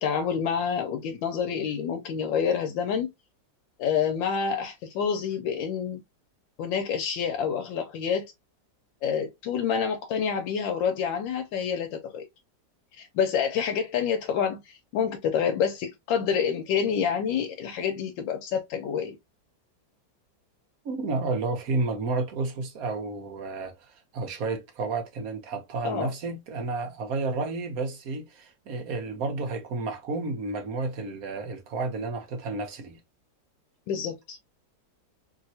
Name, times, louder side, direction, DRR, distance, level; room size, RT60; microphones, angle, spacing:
voice 1, 0.0-3.1 3.8-6.0 6.6-8.3 9.0-12.3 12.9-19.2 25.8-26.1 33.9-34.4, left 7 dB, 85° left, 1.3 m, -28 dB
voice 2, 20.8-33.0, right 3 dB, 60° right, 1.1 m, -31 dB
3.2 x 2.8 x 2.7 m
omnidirectional pair, 2.0 m